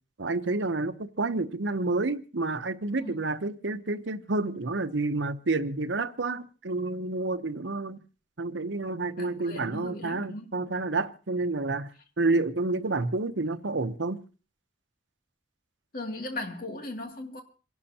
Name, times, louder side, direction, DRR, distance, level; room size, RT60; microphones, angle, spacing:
voice 1, 0.2-8.0 8.4-11.9 12.2-14.2, right 3 dB, 85° right, 0.9 m, -29 dB
voice 2, 9.2-10.6 15.9-17.4, left 2 dB, 50° left, 2.5 m, -38 dB
27.5 x 12.0 x 2.9 m
head